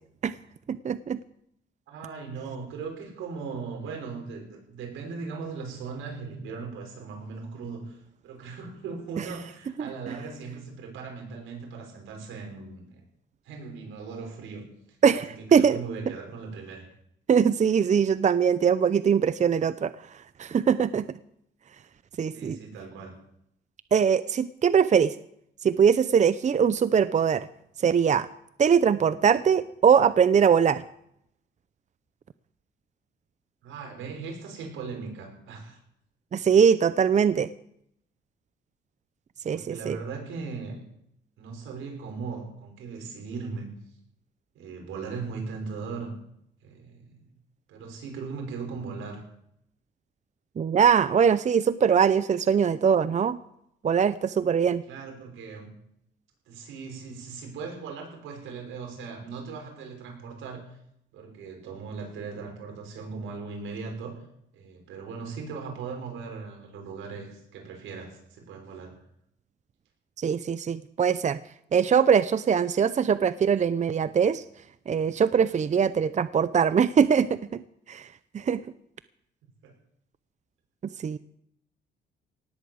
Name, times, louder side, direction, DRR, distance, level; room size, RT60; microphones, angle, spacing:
voice 1, 0.7-1.2 9.8-9.9 15.0-15.8 17.3-19.9 20.4-21.0 22.2-22.6 23.9-25.1 25.6-27.5 27.8-28.3 28.6-30.8 36.3-37.5 39.5-40.0 50.6-53.4 53.8-54.8 70.2-71.4 71.7-74.4 74.9-77.6 77.9-78.1 78.3-78.6 81.0-81.2, right 7 dB, 35° right, 15 dB, 0.6 m, -22 dB
voice 2, 1.9-12.9 13.4-14.7 15.1-15.2 15.5-16.8 22.3-23.1 33.6-35.8 39.5-40.8 41.4-43.7 44.5-46.1 46.6-47.2 47.7-49.2 54.9-55.7 56.5-60.6 61.1-64.2 64.5-69.0 79.6-79.7, right 5 dB, 85° right, 2 dB, 6.0 m, -38 dB
18.5 x 8.3 x 8.1 m, 0.75 s
cardioid pair, 90°, 20 cm